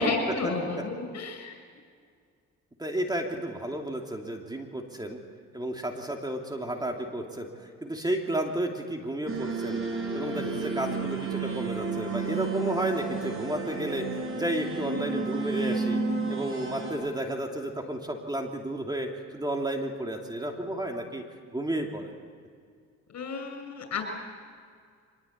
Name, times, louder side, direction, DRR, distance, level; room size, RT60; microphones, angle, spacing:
voice 1, 0.0-1.6 23.1-24.0, left 3 dB, 65° left, 5 dB, 6.7 m, -31 dB
voice 2, 2.8-5.2 5.5-9.8 10.1-14.1 14.3-16.0 16.3-21.2 21.5-22.1, right 1 dB, 15° right, 2 dB, 2.9 m, -32 dB
sound 1, 9.3-16.9, right 4 dB, 45° right, 6.6 m, -32 dB
24.5 x 20.5 x 8.6 m, 2.1 s
cardioid pair, 90°, 30 cm